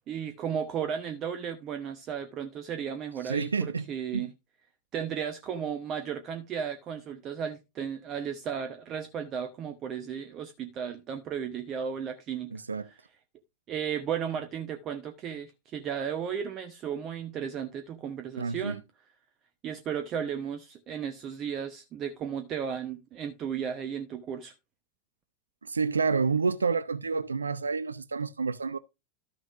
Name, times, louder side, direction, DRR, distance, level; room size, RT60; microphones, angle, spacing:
voice 1, 0.1-4.3 4.9-12.5 13.7-18.8 19.6-24.5, right 8 dB, 30° right, 0.9 m, -34 dB
voice 2, 3.2-3.9 4.1-4.3 12.5-12.9 18.4-18.8 25.6-28.8, right 5 dB, 75° right, 0.4 m, -29 dB
13.0 x 6.2 x 2.5 m
figure-of-eight pair, 90°, 0 cm